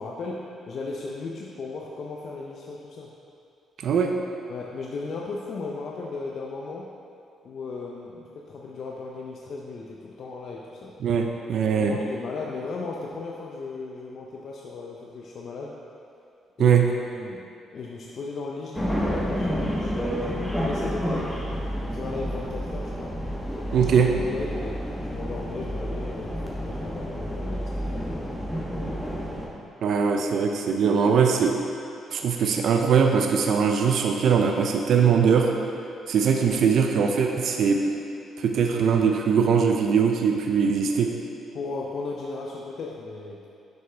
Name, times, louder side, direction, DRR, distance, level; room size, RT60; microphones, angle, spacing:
voice 1, 0.0-3.1 4.5-6.9 7.4-10.9 11.7-15.7 16.6-21.4 21.8-23.1 23.7-23.9 24.3-24.8 25.1-28.2 28.7-29.1 41.5-43.5, left 3 dB, 60° left, -2 dB, 0.6 m, -36 dB
voice 2, 11.0-12.0 16.6-16.9 23.7-24.1 29.8-31.5 32.1-35.5 36.1-37.8 38.4-41.1, right 6 dB, 65° right, 3 dB, 0.5 m, -21 dB
sound 1, 18.7-29.5, equal, 5° left, 1.3 m, -30 dB
7.4 x 5.4 x 3.4 m, 2.6 s
cardioid pair, 90°, 0 cm